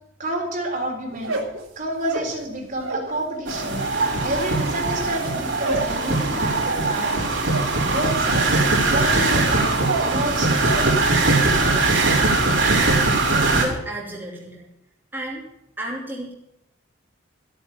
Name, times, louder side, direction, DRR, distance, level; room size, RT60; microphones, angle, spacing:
voice 1, 0.2-1.4 1.8-3.8 4.2-7.1 7.8-8.6 8.9-9.7 10.0-10.9, right 1 dB, 40° right, 1 dB, 3.9 m, -29 dB
sound 1, 1.1-3.2 3.4-10.2 10.5-11.0 11.3-11.8, right 3 dB, 85° right, 3.4 m, -31 dB
sound 2, 3.5-13.7, right 3 dB, 60° right, 4.9 m, -21 dB
voice 2, 13.3-14.7 15.1-15.4 15.8-16.3, right 1 dB, 10° right, -5 dB, 2.8 m, -32 dB
14.0 x 9.0 x 7.3 m, 0.83 s
head